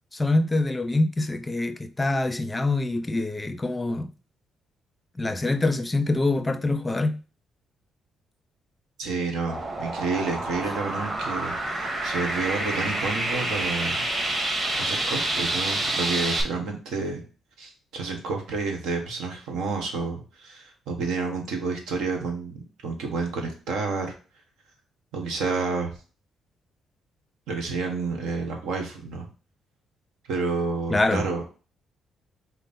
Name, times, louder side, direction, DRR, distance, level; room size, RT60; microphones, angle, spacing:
voice 1, 0.1-4.1 5.2-7.2 30.9-31.3, left 2 dB, 20° left, 0.4 m, -25 dB
voice 2, 9.0-14.0 14.8-17.2 17.6-24.1 25.1-25.9 27.5-29.3 30.3-31.4, right 4 dB, 90° right, 1.1 m, -30 dB
sound 1, 9.5-16.4, right 2 dB, 30° right, 1.5 m, -28 dB
5.2 x 2.1 x 4.1 m
cardioid pair, 90°, 0 cm